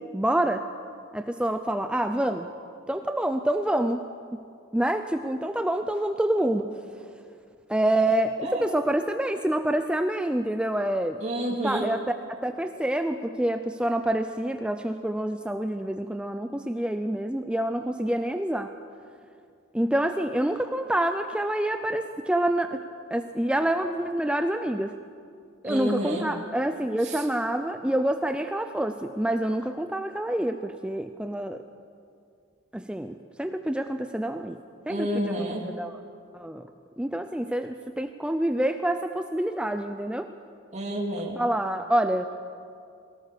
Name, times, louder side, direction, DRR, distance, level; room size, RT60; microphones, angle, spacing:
voice 1, 0.1-0.6 1.1-2.5 2.9-4.0 4.7-6.7 7.7-11.2 11.6-12.0 12.4-18.7 19.7-22.8 23.1-24.9 25.6-31.6 32.7-34.6 34.9-36.0 36.3-36.7 37.0-40.3 41.4-42.3, right 1 dB, 5° right, 7 dB, 0.5 m, -27 dB
voice 2, 11.2-11.9 25.6-26.3 27.0-27.2 34.9-35.6 40.7-41.4, equal, 35° right, -2 dB, 2.5 m, -29 dB
22.0 x 18.0 x 6.8 m, 2.3 s
head